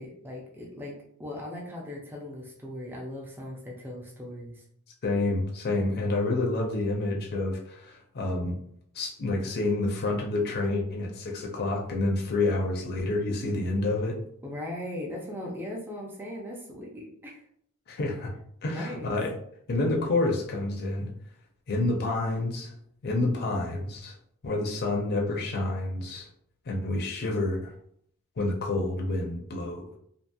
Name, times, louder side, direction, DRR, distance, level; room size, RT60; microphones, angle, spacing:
voice 1, 0.0-4.6 14.4-17.4 18.7-19.2, left 1 dB, 10° right, -1 dB, 0.4 m, -39 dB
voice 2, 5.0-8.6 8.9-14.2 17.9-18.3 18.6-19.3 19.7-21.1 21.7-22.7 23.0-24.1 24.4-26.3 26.7-27.7 28.4-30.0, left 2 dB, 45° left, 0 dB, 0.5 m, -28 dB
2.7 x 2.7 x 2.2 m, 0.68 s
head